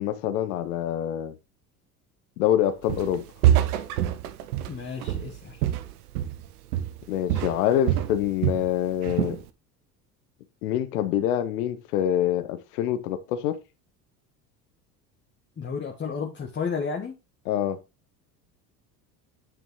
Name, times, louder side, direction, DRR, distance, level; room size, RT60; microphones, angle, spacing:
voice 1, 0.0-1.3 2.4-3.2 7.1-9.4 10.6-13.6 17.5-17.8, left 11 dB, 65° left, 1.0 m, -25 dB
Walk footsteps, 2.9-3.2 3.4-6.5 6.7-7.0 7.3-8.7 9.0-9.4, right 12 dB, 60° right, 1.0 m, -25 dB
voice 2, 4.7-5.6 15.6-17.2, left 5 dB, 20° left, 1.5 m, -32 dB
9.3 x 6.0 x 3.1 m
figure-of-eight pair, 70°, 50 cm